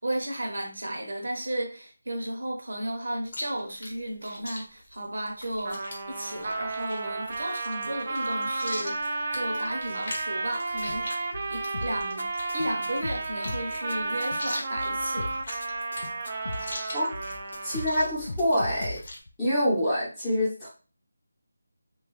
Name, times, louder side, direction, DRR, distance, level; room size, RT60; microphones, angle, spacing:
voice 1, 0.0-11.1 11.5-12.3 12.5-15.3, right 1 dB, 70° right, 0.9 m, -34 dB
Chewing mastication, 3.3-19.2, left 1 dB, 40° left, 0.9 m, -42 dB
Trumpet, 5.6-18.1, right 3 dB, 30° right, 0.4 m, -33 dB
sound 1, 10.7-19.3, left 2 dB, 60° left, 0.4 m, -38 dB
voice 2, 17.6-19.0 19.4-20.7, equal, 5° left, 0.9 m, -26 dB
2.9 x 2.3 x 3.0 m
figure-of-eight pair, 175°, 0 cm